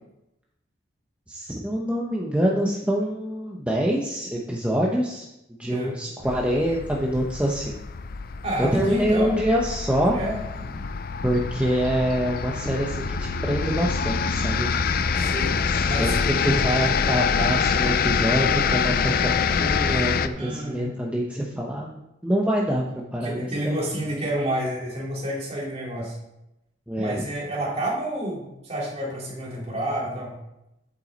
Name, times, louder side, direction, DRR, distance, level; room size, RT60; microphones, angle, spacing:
voice 1, 1.3-5.3 5.6-7.8 8.6-10.2 11.2-14.7 15.6-23.7 26.9-27.2, equal, 5° right, -3 dB, 0.9 m, -25 dB
sound 1, 6.2-20.3, left 5 dB, 55° left, 0.4 m, -25 dB
voice 2, 8.4-9.3 10.1-10.8 15.1-15.5 15.9-16.1 20.3-20.9 23.2-26.2 26.9-30.4, right 1 dB, 35° right, -3 dB, 3.0 m, -29 dB
8.2 x 8.0 x 4.1 m, 0.89 s
head